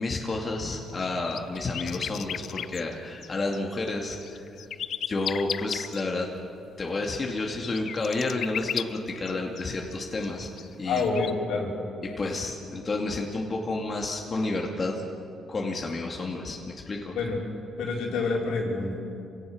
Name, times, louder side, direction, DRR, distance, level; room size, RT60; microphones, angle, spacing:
voice 1, 0.0-4.5 5.1-6.3 6.8-10.5 10.8-11.1 12.2-15.0 15.5-17.2, left 2 dB, 35° left, 0 dB, 2.3 m, -30 dB
sound 1, 0.7-3.6 3.9-6.0 7.0-9.6 9.9-10.0 10.2-11.3, left 9 dB, 65° left, 0.6 m, -35 dB
voice 2, 10.8-11.7 17.1-17.4 17.8-19.0, left 4 dB, 85° left, -2 dB, 4.9 m, -27 dB
27.0 x 17.5 x 6.6 m, 2.7 s
cardioid pair, 90°, 0 cm